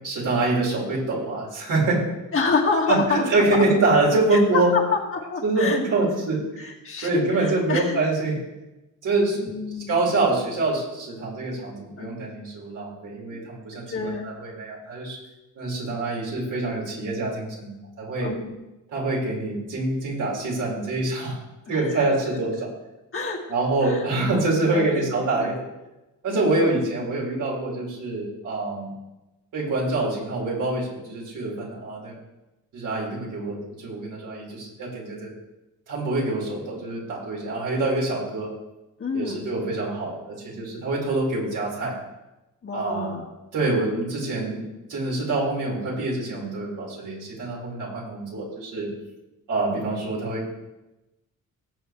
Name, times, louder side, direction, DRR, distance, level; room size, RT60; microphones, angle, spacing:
voice 1, 0.0-2.0 2.9-4.7 5.4-6.7 7.0-8.4 9.0-9.4 9.9-15.2 15.5-18.3 18.9-21.4 21.7-22.7 23.5-25.5 26.2-28.9 29.5-32.1 32.7-35.3 35.9-38.5 39.1-41.9 42.7-43.2 43.5-44.6 44.9-48.9 49.5-50.6, right 2 dB, 70° right, -4 dB, 4.9 m, -25 dB
voice 2, 2.3-3.6 4.3-5.8 6.6-8.0 9.4-10.2 12.0-12.1 13.3-13.4 13.9-14.3 18.2-18.6 21.7-22.1 23.1-23.5 23.8-24.4 24.7-25.5 26.3-26.6 39.0-39.5 42.6-43.2, left 4 dB, 40° left, 0 dB, 1.9 m, -28 dB
18.5 x 7.6 x 3.3 m, 1.0 s
cardioid pair, 110°, 32 cm